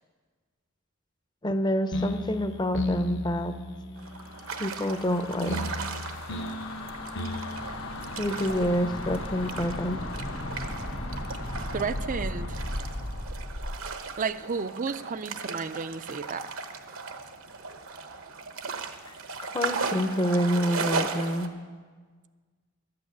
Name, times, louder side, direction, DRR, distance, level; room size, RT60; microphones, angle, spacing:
voice 1, 1.4-3.5 4.6-5.6 8.2-10.0 19.1-19.2 19.4-21.5, equal, 20° left, 9 dB, 0.7 m, -27 dB
sound 1, 1.9-9.4, left 1 dB, 55° left, 0.9 m, -36 dB
sound 2, 4.0-21.5, right 4 dB, 70° right, 1.0 m, -37 dB
sound 3, 4.1-13.9, left 1 dB, 70° left, 1.3 m, -36 dB
voice 2, 11.7-12.6 14.2-16.5, right 5 dB, 40° right, 14 dB, 0.4 m, -32 dB
13.0 x 8.8 x 7.9 m, 1.5 s
head